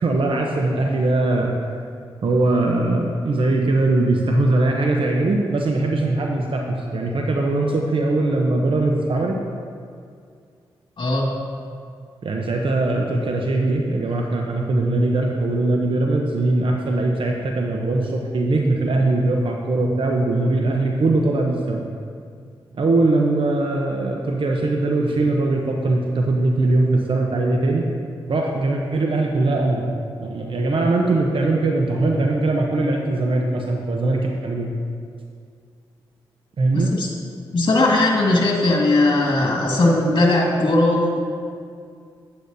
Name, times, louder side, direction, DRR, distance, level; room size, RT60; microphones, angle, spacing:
voice 1, 0.0-1.5 2.2-9.4 12.2-21.9 22.7-27.8 28.3-29.8 30.2-34.7 36.6-36.9, right 2 dB, 60° right, 1 dB, 0.8 m, -21 dB
voice 2, 11.0-11.4 36.7-37.1 37.5-41.2, left 2 dB, 50° left, -2 dB, 2.0 m, -18 dB
9.5 x 8.6 x 2.7 m, 2.2 s
cardioid pair, 50°, 10 cm